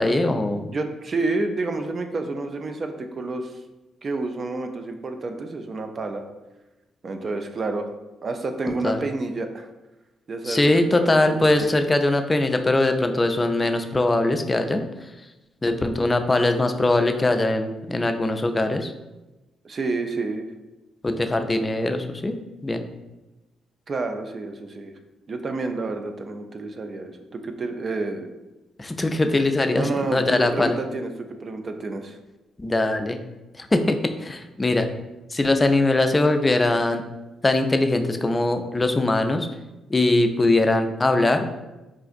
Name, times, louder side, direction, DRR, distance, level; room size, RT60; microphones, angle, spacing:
voice 1, 0.0-0.7 8.8-9.0 10.4-14.9 15.6-18.9 21.0-22.4 22.6-22.8 28.8-30.8 32.6-33.2 33.6-34.9 35.3-37.0 37.4-39.5 39.9-41.5, left 2 dB, 25° left, 7 dB, 0.3 m, -21 dB
voice 2, 0.7-3.5 4.0-6.2 7.0-7.9 8.2-9.7 10.3-11.7 19.6-20.5 23.9-24.9 25.3-28.3 29.7-32.2, right 3 dB, 45° right, 6 dB, 0.3 m, -29 dB
3.7 x 2.4 x 2.5 m, 1.0 s
hypercardioid pair, 50°, 0 cm